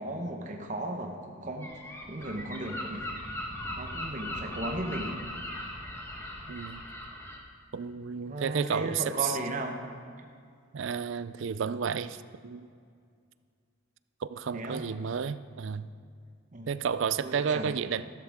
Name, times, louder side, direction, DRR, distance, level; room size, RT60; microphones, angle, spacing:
voice 1, 0.0-3.1 3.8-5.2 8.3-9.8 14.5-14.8 16.5-16.7 17.2-17.7, right 1 dB, 35° right, 2 dB, 1.0 m, -36 dB
Gull seagull, 1.6-7.4, left 1 dB, 10° left, 1.2 m, -39 dB
voice 2, 6.5-6.8 7.7-9.4 10.7-12.7 14.2-15.9 16.7-18.1, right 7 dB, 60° right, 14 dB, 0.4 m, -32 dB
14.0 x 12.5 x 3.6 m, 2.2 s
head